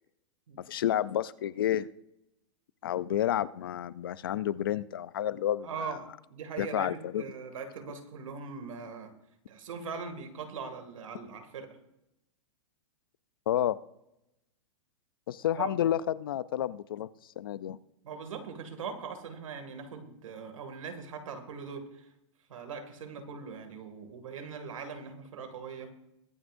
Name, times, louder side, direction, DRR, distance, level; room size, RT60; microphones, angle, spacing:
voice 1, 0.7-1.9 2.8-6.0 6.6-7.2 13.5-13.8 15.3-17.1 17.4-17.8, left 11 dB, 45° left, 18 dB, 0.4 m, -30 dB
voice 2, 5.6-6.0 6.3-9.1 9.5-11.8 15.6-15.8 18.0-22.1 22.5-25.9, right 5 dB, 85° right, 6 dB, 2.2 m, -41 dB
22.5 x 9.7 x 2.6 m, 0.86 s
supercardioid pair, 180°, 16 cm